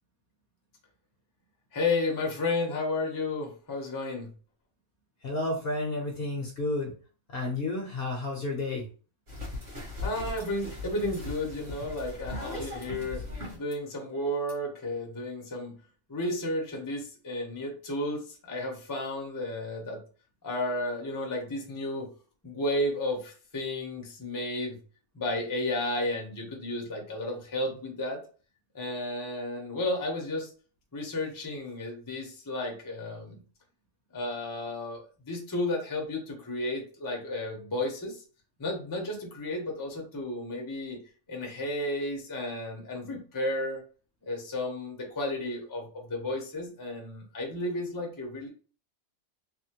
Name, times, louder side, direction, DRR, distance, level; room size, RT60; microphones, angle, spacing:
voice 1, 1.7-4.3 10.0-13.2 13.5-15.7 16.1-20.0 20.4-22.1 22.4-24.8 25.1-28.2 28.7-30.5 30.9-33.4 34.1-38.2 38.6-41.0 41.3-43.8 44.3-48.5, left 1 dB, 20° left, 0 dB, 0.5 m, -32 dB
voice 2, 5.2-6.9 7.3-8.9, left 2 dB, 55° left, 1 dB, 0.8 m, -31 dB
sound 1, 9.3-13.7 14.5-14.6, left 2 dB, 50° right, 1.6 m, -38 dB
3.4 x 2.1 x 2.8 m, 0.38 s
omnidirectional pair, 1.4 m